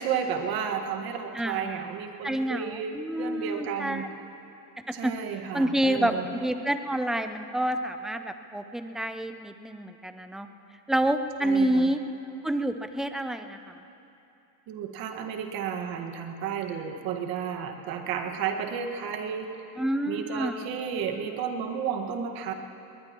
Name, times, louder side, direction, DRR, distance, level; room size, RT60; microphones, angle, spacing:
voice 1, 0.0-4.1 4.9-6.3 11.4-11.9 14.7-19.7 20.1-22.5, right 7 dB, 50° right, 4 dB, 1.7 m, -32 dB
voice 2, 1.3-1.9 2.2-4.1 4.8-5.1 5.5-10.5 10.9-12.0 12.4-13.8 19.8-20.7, right 1 dB, ahead, 8 dB, 0.4 m, -28 dB
21.5 x 20.5 x 3.0 m, 2.8 s
supercardioid pair, 115°, 47 cm